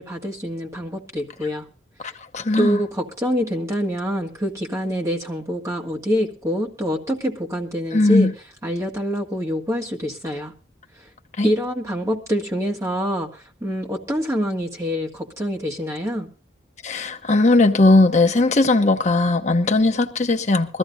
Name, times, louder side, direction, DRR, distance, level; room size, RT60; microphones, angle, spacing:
voice 1, 0.0-1.7 2.6-8.3 8.6-10.5 11.4-16.3, equal, 15° right, 1.9 m, -26 dB
voice 2, 2.0-2.8 7.9-8.3 11.4-11.5 16.8-20.8, left 2 dB, 35° left, 0.8 m, -18 dB
22.0 x 15.0 x 2.6 m
head